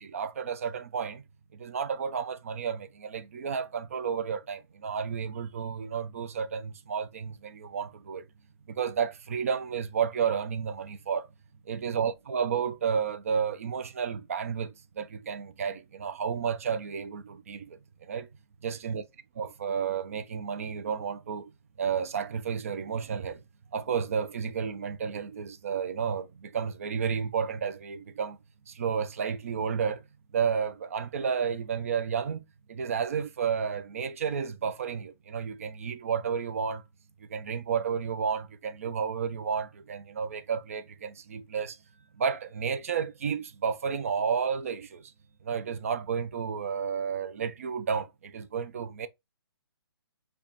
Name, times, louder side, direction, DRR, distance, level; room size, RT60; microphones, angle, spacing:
voice 1, 0.0-1.2 1.6-8.2 8.7-11.2 11.7-17.7 18.1-18.3 18.6-19.0 19.4-21.5 21.8-23.4 23.7-28.4 28.7-30.0 30.3-32.4 32.7-36.8 37.3-41.8 42.2-45.0 45.4-49.1, right 6 dB, 35° right, 0.3 m, -31 dB
4.9 x 2.2 x 2.8 m
hypercardioid pair, 165°, 14 cm